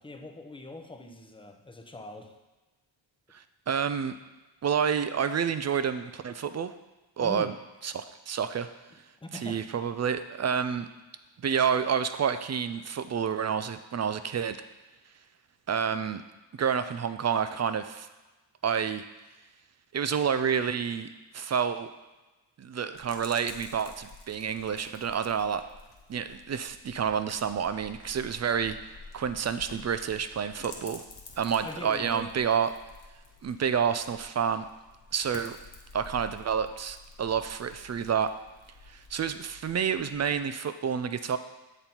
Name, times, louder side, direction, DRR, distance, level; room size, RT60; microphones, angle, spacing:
voice 1, 0.0-2.4 7.2-7.5 9.2-9.6 31.6-32.3, left 1 dB, 10° left, 4 dB, 0.7 m, -42 dB
voice 2, 3.3-4.2 4.6-6.7 7.2-7.5 7.8-8.7 9.4-10.9 11.4-14.6 15.7-16.2 16.5-18.1 18.6-19.0 19.9-21.1 21.3-21.9 22.6-25.6 26.1-28.8 29.1-31.0 31.4-32.7 33.4-34.7 35.1-35.6 35.9-38.3 38.9-41.4, right 7 dB, 35° right, 10 dB, 0.4 m, -29 dB
sound 1, 22.9-40.4, left 3 dB, 55° left, 1.1 m, -50 dB
7.0 x 4.0 x 4.4 m, 1.1 s
cardioid pair, 70°, 48 cm